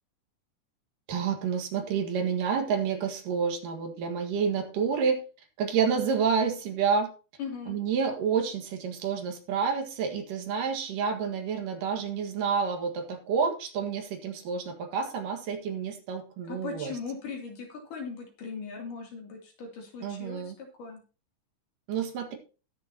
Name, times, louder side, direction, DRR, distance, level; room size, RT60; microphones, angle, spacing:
voice 1, 1.1-5.2 5.6-7.1 7.7-16.9 20.0-20.6 21.9-22.4, right 6 dB, 90° right, 4 dB, 3.4 m, -29 dB
voice 2, 7.4-7.7 16.4-21.0, left 5 dB, 85° left, 1 dB, 4.4 m, -39 dB
20.5 x 6.9 x 2.9 m, 0.34 s
omnidirectional pair, 3.7 m